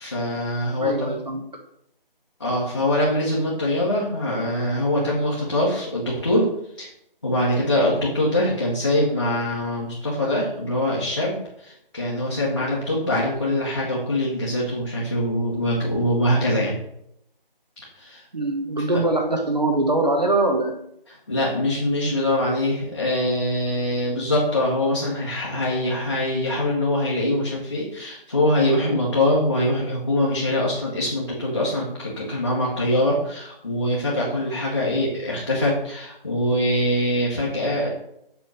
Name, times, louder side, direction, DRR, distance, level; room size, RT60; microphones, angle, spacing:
voice 1, 0.0-1.1 2.4-6.5 6.8-6.9 7.2-16.7 18.0-18.2 18.9-19.0 21.1-37.9, left 1 dB, 25° left, -7 dB, 1.3 m, -23 dB
voice 2, 0.8-1.4 18.3-20.7 22.6-22.7, right 2 dB, 45° right, 3 dB, 1.1 m, -22 dB
7.5 x 3.6 x 6.4 m, 0.75 s
figure-of-eight pair, 165°, 29 cm